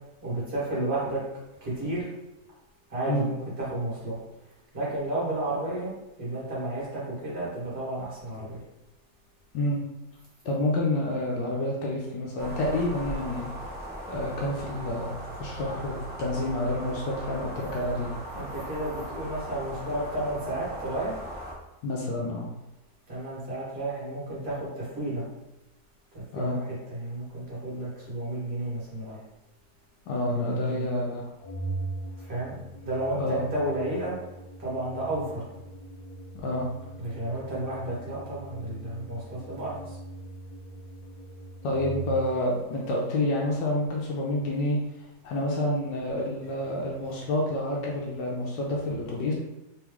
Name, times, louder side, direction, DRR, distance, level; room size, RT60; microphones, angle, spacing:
voice 1, 0.2-1.2 1.6-2.1 2.9-4.2 4.7-5.9 6.2-8.6 18.3-21.2 23.1-25.2 26.1-29.2 30.2-30.9 32.2-32.6 32.8-34.1 34.6-35.4 37.0-40.0, right 1 dB, 35° right, -8 dB, 1.7 m, -32 dB
voice 2, 10.4-13.5 14.1-15.1 15.4-18.1 21.8-22.5 26.3-26.6 30.1-31.3 33.2-33.4 36.4-36.7 41.6-44.8 45.2-49.3, left 1 dB, 85° left, -2 dB, 1.3 m, -28 dB
sound 1, 12.4-21.5, equal, 10° right, 0.5 m, -39 dB
Organ, 31.4-42.4, right 2 dB, 65° left, 1.3 m, -41 dB
3.6 x 3.0 x 3.5 m, 0.95 s
omnidirectional pair, 1.9 m